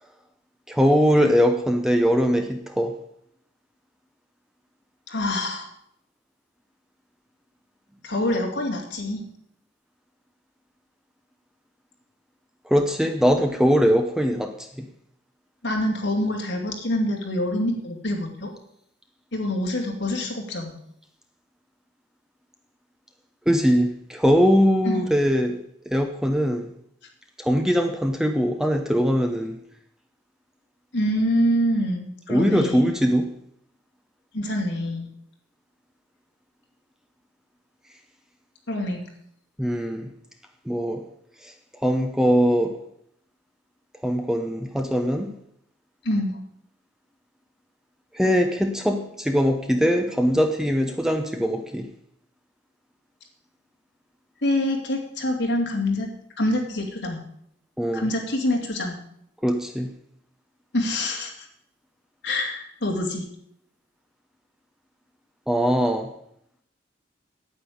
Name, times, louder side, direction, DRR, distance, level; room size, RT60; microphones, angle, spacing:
voice 1, 0.7-2.9 12.7-14.9 23.5-25.6 25.9-26.7 27.4-29.6 32.3-33.3 39.6-40.1 40.7-41.0 41.4-41.5 41.8-42.8 44.0-45.3 48.1-51.9 57.8-58.1 59.4-59.9 65.5-66.1, equal, 5° right, 5 dB, 0.8 m, -21 dB
voice 2, 5.1-5.7 8.0-9.3 15.6-18.5 19.3-20.8 24.8-25.1 30.9-32.9 34.3-35.1 38.7-39.0 46.0-46.3 54.4-56.1 56.4-57.2 57.9-59.0 60.7-61.5 62.2-63.2, left 1 dB, 65° left, 1 dB, 2.8 m, -25 dB
9.4 x 8.9 x 8.5 m, 0.71 s
head